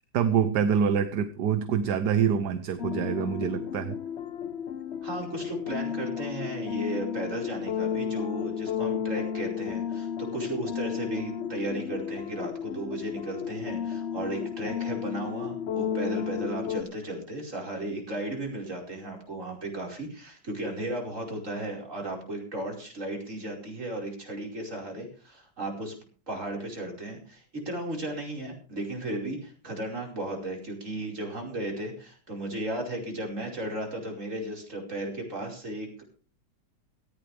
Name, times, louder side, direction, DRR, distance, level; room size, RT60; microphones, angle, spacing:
voice 1, 0.1-4.0, right 7 dB, 65° right, 10 dB, 1.4 m, -25 dB
sound 1, 2.8-16.8, left 8 dB, 40° left, 1.1 m, -33 dB
voice 2, 5.0-25.9 26.3-36.0, right 1 dB, 40° right, 0 dB, 5.4 m, -35 dB
17.5 x 15.5 x 3.4 m, 0.36 s
omnidirectional pair, 2.1 m